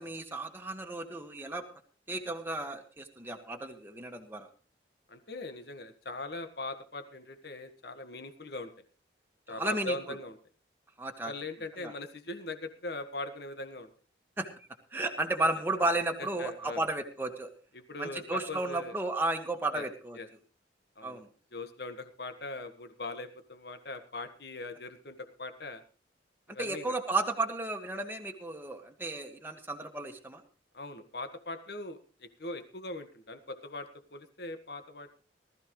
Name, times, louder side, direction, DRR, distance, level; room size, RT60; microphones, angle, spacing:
voice 1, 0.0-1.6 2.1-4.5 9.6-10.2 11.0-11.3 11.8-11.9 14.4-14.5 14.9-17.5 18.0-20.2 21.0-21.3 26.6-30.4, right 2 dB, 10° right, 3 dB, 1.7 m, -33 dB
voice 2, 5.1-8.7 9.5-10.4 11.2-13.9 16.2-16.8 17.7-18.9 19.7-19.8 20.2-20.3 21.0-21.2 21.5-25.8 26.5-26.9 30.7-35.2, left 2 dB, 55° left, 9 dB, 1.6 m, -41 dB
19.0 x 13.5 x 3.2 m, 0.37 s
head